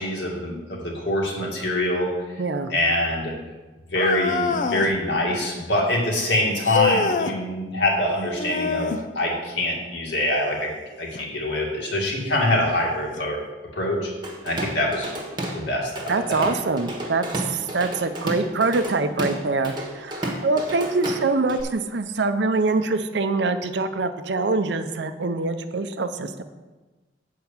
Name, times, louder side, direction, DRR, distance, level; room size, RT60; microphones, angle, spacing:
voice 1, 0.0-2.1 2.7-3.3 3.9-8.9 9.1-10.7 11.0-13.4 13.7-14.1 14.4-15.1 15.5-16.5, left 1 dB, 70° left, -2 dB, 2.1 m, -24 dB
voice 2, 2.4-2.7 16.1-26.4, right 3 dB, 65° right, 9 dB, 0.6 m, -24 dB
sound 1, 3.9-5.0 6.6-7.4 8.4-9.1 11.1-11.2 12.1-12.2 13.2-13.3, left 4 dB, 45° left, 0.5 m, -25 dB
Drum kit / Drum, 14.2-15.6 16.0-21.6, right 1 dB, 25° right, 1.3 m, -32 dB
7.8 x 4.7 x 7.1 m, 1.2 s
head